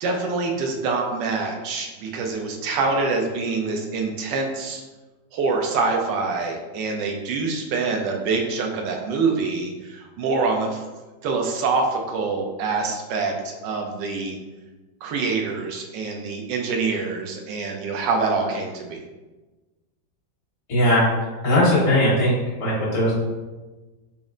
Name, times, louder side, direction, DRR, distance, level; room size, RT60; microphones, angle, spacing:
voice 1, 0.0-4.8 5.3-10.8 11.2-14.4 15.0-19.0, right 4 dB, 75° right, 2 dB, 1.2 m, -25 dB
voice 2, 20.7-21.1 21.4-22.3 22.6-23.1, left 1 dB, 55° left, -9 dB, 2.0 m, -18 dB
4.2 x 2.0 x 3.6 m, 1.2 s
omnidirectional pair, 2.1 m